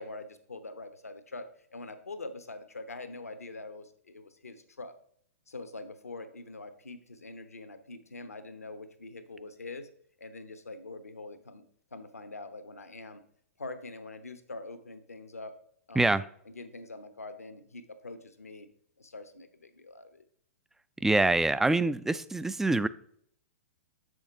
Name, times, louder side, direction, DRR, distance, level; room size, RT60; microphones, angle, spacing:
voice 1, 0.0-4.9 5.5-9.9 10.2-11.6 11.9-13.2 13.6-15.5 15.9-16.2 16.4-18.7 19.0-20.2, left 3 dB, 85° left, 10 dB, 1.0 m, -44 dB
voice 2, 21.0-22.9, right 2 dB, 5° right, 15 dB, 0.3 m, -25 dB
7.8 x 6.3 x 3.7 m, 0.64 s
figure-of-eight pair, 110°, 8 cm